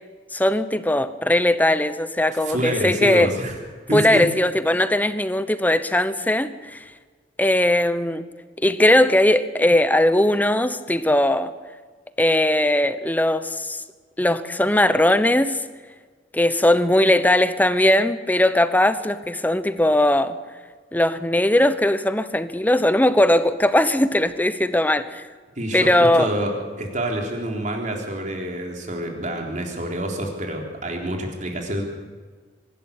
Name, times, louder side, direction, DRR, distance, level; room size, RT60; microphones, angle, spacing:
voice 1, 0.3-3.3 3.9-6.8 7.4-8.3 8.6-11.5 12.2-13.8 14.2-15.6 16.3-20.4 20.9-25.2 25.7-26.3, left 1 dB, 10° left, 13 dB, 0.9 m, -19 dB
voice 2, 2.3-3.6 3.9-4.2 25.6-26.5 26.8-31.8, right 1 dB, 45° right, 1 dB, 3.8 m, -27 dB
24.5 x 12.5 x 8.5 m, 1.5 s
head